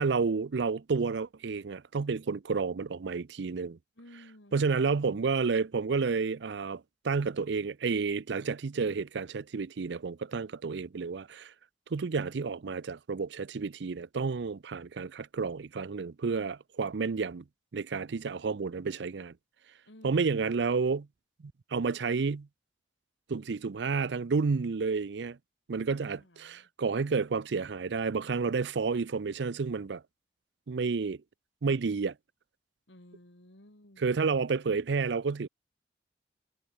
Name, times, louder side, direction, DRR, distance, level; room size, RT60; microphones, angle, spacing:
voice 1, 0.0-3.8 4.5-11.5 11.9-17.4 17.7-19.3 20.0-21.1 21.4-22.5 23.3-25.4 25.7-30.0 30.7-31.2 31.6-32.1 34.0-35.5, right 4 dB, 65° right, 0.5 m, -30 dB
voice 2, 3.9-5.4 19.8-20.6 26.0-26.7 32.9-34.0, left 1 dB, 75° left, 3.4 m, -56 dB
head